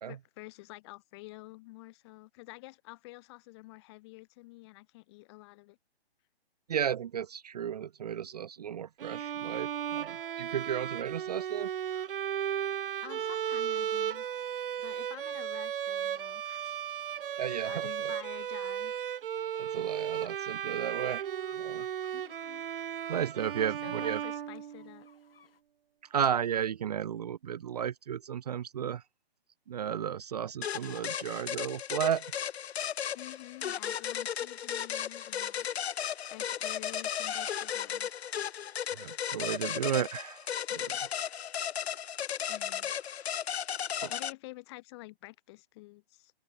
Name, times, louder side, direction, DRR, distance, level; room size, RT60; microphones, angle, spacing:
voice 1, 0.0-5.8 13.0-16.9 17.5-18.9 22.1-22.7 23.6-25.1 33.1-38.4 42.5-42.9 44.1-46.3, left 22 dB, 25° left, 7.1 m, -49 dB
voice 2, 6.7-11.7 17.4-17.9 19.6-21.3 21.6-21.9 23.1-24.2 26.1-29.0 29.7-32.3 38.9-41.0 44.0-44.1, right 9 dB, 40° right, 0.8 m, -34 dB
Bowed string instrument, 9.0-25.1, right 9 dB, 60° right, 0.5 m, -35 dB
sound 1, 11.3-25.6, left 6 dB, 65° left, 7.1 m, -62 dB
sound 2, 30.6-44.3, left 9 dB, 80° left, 0.6 m, -35 dB
hypercardioid pair, 160°, 31 cm